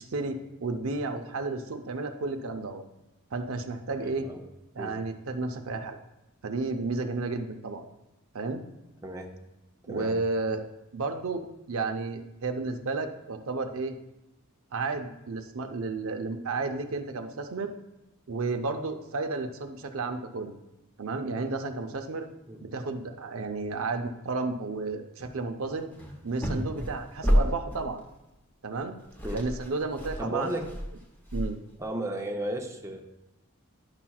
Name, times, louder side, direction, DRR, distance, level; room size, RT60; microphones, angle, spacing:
voice 1, 0.0-2.8 3.3-4.3 4.7-6.0 6.4-7.8 8.3-8.6 9.9-10.6 10.9-11.4 11.7-14.0 14.7-17.7 18.3-20.5 21.0-22.3 22.6-25.9 26.2-28.0 28.6-29.0 29.3-30.5 31.3-31.6, right 3 dB, 75° right, 5 dB, 0.6 m, -32 dB
voice 2, 4.0-4.4 4.8-5.0 9.0-9.3 9.8-10.2 22.5-22.6 29.2-29.4 30.2-30.7 31.8-33.0, right 1 dB, 15° right, 2 dB, 0.6 m, -34 dB
sound 1, 25.2-25.4 25.6-28.0 28.8-28.9 29.0-31.8, equal, 10° left, 0.9 m, -30 dB
10.5 x 5.8 x 2.3 m, 0.93 s
head